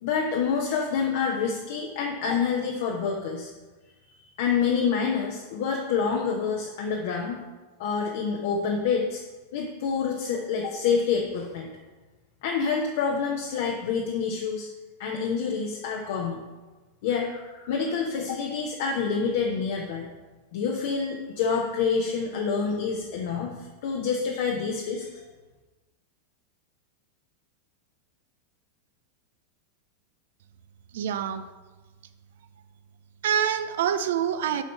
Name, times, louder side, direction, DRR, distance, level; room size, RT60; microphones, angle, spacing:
voice 1, 0.0-3.5 4.4-7.4 7.8-9.2 9.5-11.7 12.4-14.7 15.0-16.4 17.0-20.1 20.5-25.2, left 6 dB, 50° left, 1 dB, 0.9 m, -27 dB
voice 2, 30.9-31.5 33.2-34.6, right 9 dB, 55° right, 11 dB, 0.5 m, -26 dB
8.0 x 5.2 x 5.6 m, 1.2 s
figure-of-eight pair, 90°, 0 cm